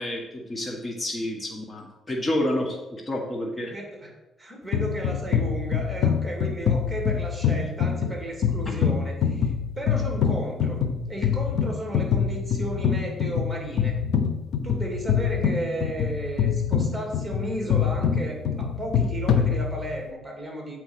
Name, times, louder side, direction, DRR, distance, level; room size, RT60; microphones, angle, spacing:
voice 1, 0.0-3.7, left 1 dB, 20° left, 0 dB, 1.5 m, -29 dB
voice 2, 3.7-4.1 4.4-10.8 11.1-14.0 14.6-20.8, right 1 dB, 10° right, 1 dB, 2.6 m, -34 dB
sound 1, 4.7-20.1, left 7 dB, 75° left, 0.7 m, -25 dB
7.7 x 4.6 x 6.2 m, 1.0 s
cardioid pair, 90°, 0 cm